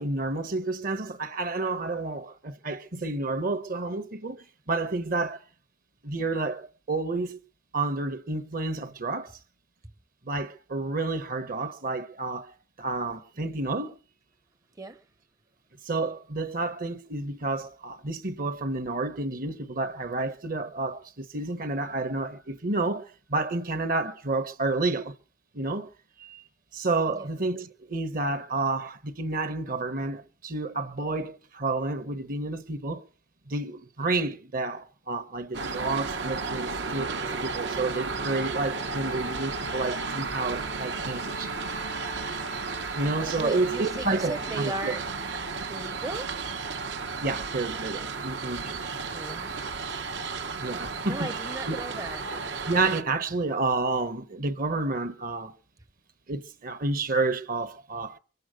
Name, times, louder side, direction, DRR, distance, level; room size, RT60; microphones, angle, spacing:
voice 1, 0.0-5.4 6.0-7.4 7.7-9.4 10.2-14.0 15.8-25.1 25.5-25.9 26.2-26.4 26.7-33.0 33.5-37.1 37.4-41.6 42.9-44.9 47.2-49.0 50.6-51.3 51.6-51.8 52.6-55.6 56.3-58.2, right 3 dB, 50° right, 1.0 m, -30 dB
sound 1, 35.5-53.0, right 4 dB, 80° right, 1.1 m, -33 dB
Bowed string instrument, 38.4-44.8, left 4 dB, 60° left, 0.7 m, -46 dB
voice 2, 43.4-45.0 45.7-46.3 49.1-50.0 51.0-52.3, right 2 dB, 20° right, 0.6 m, -37 dB
24.0 x 8.0 x 6.3 m
head